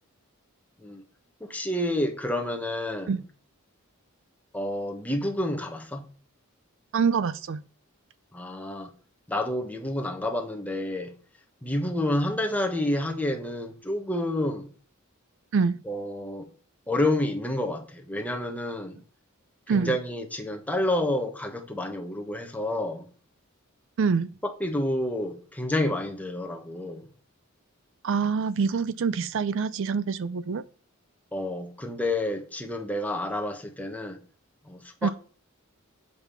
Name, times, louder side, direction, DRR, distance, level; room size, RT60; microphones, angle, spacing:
voice 1, 1.4-3.2 4.5-6.0 8.3-8.9 9.3-11.1 11.6-14.7 15.8-16.5 16.9-19.0 19.7-23.1 24.4-27.1 31.3-34.2 34.7-35.1, left 1 dB, 5° left, 1.2 m, -29 dB
voice 2, 6.9-7.6 15.5-15.8 19.7-20.0 24.0-24.3 28.0-30.6 35.0-35.1, right 5 dB, 60° right, 0.4 m, -25 dB
8.1 x 5.3 x 5.6 m
head